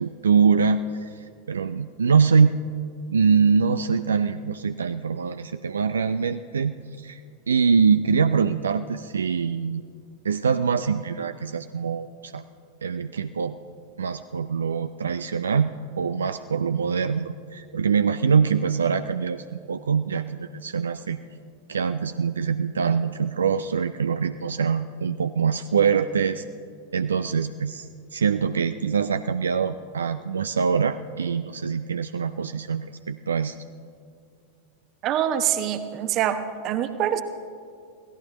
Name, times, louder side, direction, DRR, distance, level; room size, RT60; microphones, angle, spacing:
voice 1, 0.0-2.6 3.1-7.2 7.5-9.8 10.2-12.4 12.8-13.6 14.0-21.2 21.7-26.5 26.9-33.6, right 6 dB, 70° right, 11 dB, 0.3 m, -24 dB
voice 2, 35.0-37.2, right 10 dB, 35° right, 10 dB, 1.0 m, -25 dB
25.0 x 17.0 x 3.0 m, 2.4 s
figure-of-eight pair, 90°, 0 cm